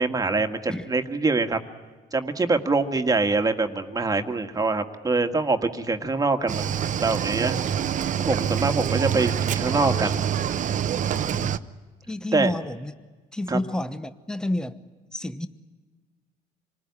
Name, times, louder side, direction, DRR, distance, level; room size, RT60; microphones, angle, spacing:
voice 1, 0.0-1.6 2.1-6.7 7.0-7.6 8.2-10.2 12.3-12.5 13.5-13.6, right 3 dB, 20° right, 6 dB, 1.8 m, -24 dB
Cricket / Waves surf, 6.5-11.6, right 9 dB, 50° right, 0.9 m, -26 dB
voice 2, 12.1-12.9 13.3-14.8 15.1-15.5, left 1 dB, 5° left, 12 dB, 1.0 m, -30 dB
26.5 x 19.5 x 9.7 m, 1.3 s
cardioid pair, 110°, 17 cm